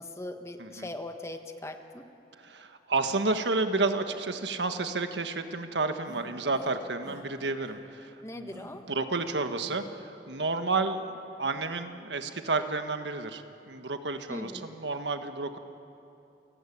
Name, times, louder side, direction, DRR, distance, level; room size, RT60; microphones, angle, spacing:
voice 1, 0.0-2.1 8.2-8.8 10.8-10.9 14.3-14.7, left 1 dB, 15° left, 6 dB, 1.3 m, -40 dB
voice 2, 2.4-8.6 8.9-11.0 11.4-15.6, right 3 dB, 85° right, 7 dB, 1.5 m, -31 dB
sound 1, 6.0-6.8 7.0-7.2 7.6-7.8 8.5-8.7 9.6-9.8, equal, 25° right, 2.8 m, -49 dB
28.5 x 18.5 x 8.7 m, 2.8 s
head